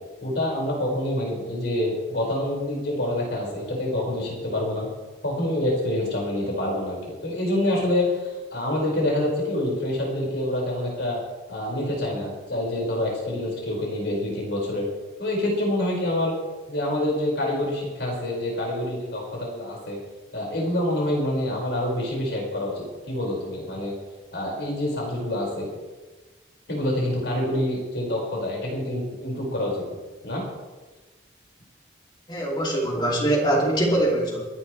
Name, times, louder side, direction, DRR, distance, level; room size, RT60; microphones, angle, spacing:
voice 1, 0.2-4.9 5.2-11.2 11.5-14.9 15.2-16.3 16.7-20.0 20.3-23.9 24.3-25.7 26.7-29.8 30.2-30.4, left 1 dB, 70° left, -3 dB, 5.6 m, -26 dB
voice 2, 32.3-34.4, right 1 dB, 25° left, -2 dB, 2.9 m, -23 dB
27.0 x 11.0 x 3.4 m, 1.3 s
head